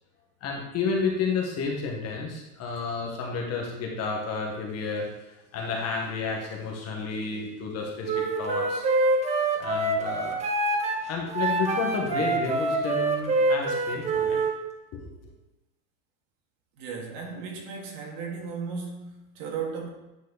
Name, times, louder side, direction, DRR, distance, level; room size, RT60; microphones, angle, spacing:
voice 1, 0.4-5.1 5.5-8.9 9.6-10.4 11.1-14.4 14.9-15.3, left 4 dB, 35° left, 0 dB, 1.6 m, -31 dB
Wind instrument woodwind instrument, 8.0-14.6, right 2 dB, 15° right, 0.7 m, -26 dB
voice 2, 16.8-19.9, right 5 dB, 55° right, 0 dB, 2.2 m, -35 dB
9.6 x 4.6 x 4.1 m, 0.98 s
supercardioid pair, 145°, 46 cm